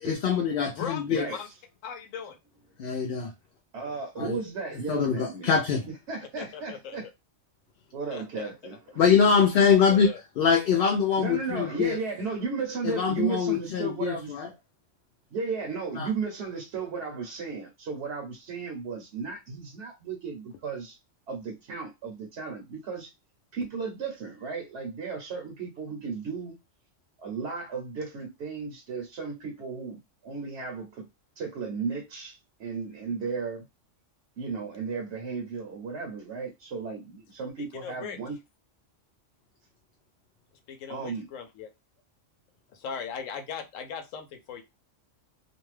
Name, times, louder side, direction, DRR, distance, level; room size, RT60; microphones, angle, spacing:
voice 1, 0.0-1.3 2.8-3.3 4.2-4.4 4.9-5.9 9.0-12.0 12.8-14.5 16.0-16.1, left 6 dB, 60° left, 0.6 m, -24 dB
voice 2, 0.7-1.5 1.8-2.4 6.4-7.0 8.1-8.5 9.8-10.2 37.6-38.2 40.7-41.7 42.7-44.6, left 7 dB, 90° left, 1.0 m, -38 dB
voice 3, 3.7-5.5 6.1-7.1 7.9-9.0 11.2-14.3 15.3-21.0 21.3-23.1 23.5-26.5 27.2-31.1 31.4-33.6 34.4-38.4 40.9-41.3, right 5 dB, 65° right, 1.0 m, -34 dB
2.5 x 2.2 x 3.1 m
omnidirectional pair, 1.3 m